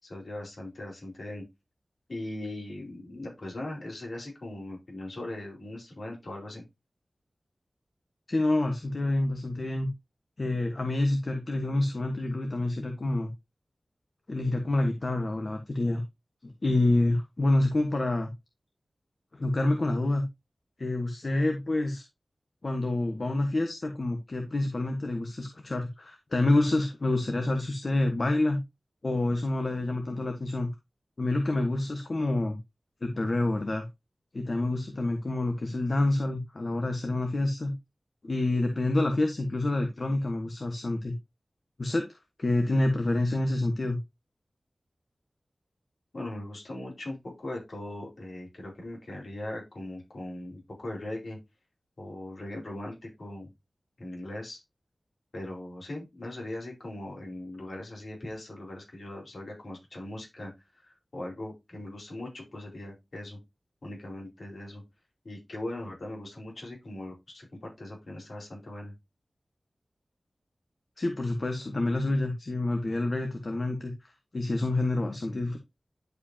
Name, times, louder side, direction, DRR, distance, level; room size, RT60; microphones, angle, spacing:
voice 1, 0.0-1.4 2.1-6.6 46.1-51.4 52.0-53.5 54.0-54.6 55.3-60.5 60.8-63.4 63.8-64.8 65.2-68.9, left 1 dB, 65° left, -2 dB, 4.5 m, -39 dB
voice 2, 8.3-9.9 10.4-13.3 14.3-16.0 16.4-18.3 19.3-20.2 20.8-22.0 22.6-28.6 29.0-30.7 31.2-32.6 33.0-33.9 34.3-37.7 38.2-41.2 41.8-42.1 42.4-44.0 71.0-73.9 74.3-75.6, left 2 dB, 50° left, 5 dB, 1.3 m, -27 dB
11.0 x 5.0 x 2.8 m, 0.21 s
wide cardioid pair, 85°, 0 cm